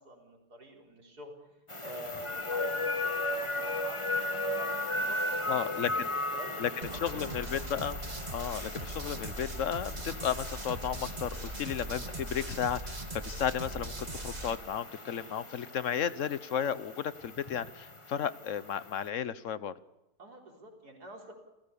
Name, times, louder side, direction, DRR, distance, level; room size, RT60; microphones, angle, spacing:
voice 1, 0.0-7.3 20.2-21.3, equal, 65° right, 1 dB, 4.7 m, -47 dB
sound 1, 1.7-19.1, left 2 dB, 20° left, 1.5 m, -37 dB
voice 2, 5.5-6.1 6.6-6.7 7.0-8.0 8.3-19.7, left 8 dB, 55° left, 15 dB, 1.1 m, -34 dB
sound 2, 6.8-14.6, right 2 dB, 25° right, 1.9 m, -40 dB
29.0 x 16.5 x 7.0 m, 0.97 s
omnidirectional pair, 1.8 m